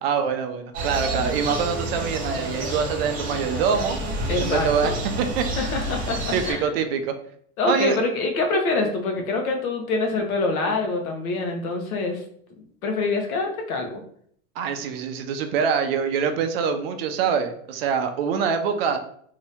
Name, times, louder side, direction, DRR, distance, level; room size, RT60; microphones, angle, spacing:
voice 1, 0.0-4.0 4.4-4.9 5.2-5.5 6.3-7.1 7.7-8.0 14.6-19.0, right 6 dB, 45° right, 7 dB, 0.4 m, -24 dB
sound 1, 0.7-6.5, right 1 dB, 20° right, 0.9 m, -29 dB
voice 2, 4.3-5.0 5.6-6.7 7.6-12.2 12.8-14.0, left 3 dB, 80° left, 3 dB, 1.0 m, -25 dB
2.8 x 2.7 x 3.3 m, 0.63 s
supercardioid pair, 160°, 42 cm